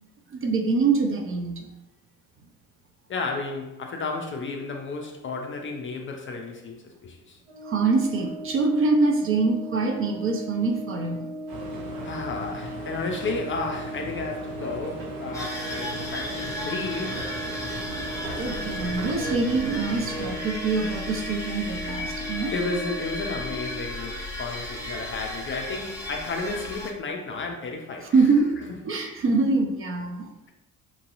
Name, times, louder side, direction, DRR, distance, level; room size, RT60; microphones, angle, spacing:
voice 1, 0.3-1.7 7.6-11.3 18.4-22.5 28.1-28.6 28.8-30.3, right 3 dB, 30° right, 3 dB, 0.5 m, -24 dB
voice 2, 3.1-7.4 12.0-17.3 22.5-28.3, left 3 dB, 30° left, 2 dB, 0.4 m, -32 dB
Brass instrument, 7.5-23.8, right 1 dB, 70° right, 1.3 m, -38 dB
sound 1, 11.5-20.4, equal, 50° right, 0.9 m, -38 dB
sound 2, 15.3-26.9, left 1 dB, 5° left, 0.8 m, -35 dB
3.0 x 2.6 x 2.5 m, 0.97 s
figure-of-eight pair, 50°, 44 cm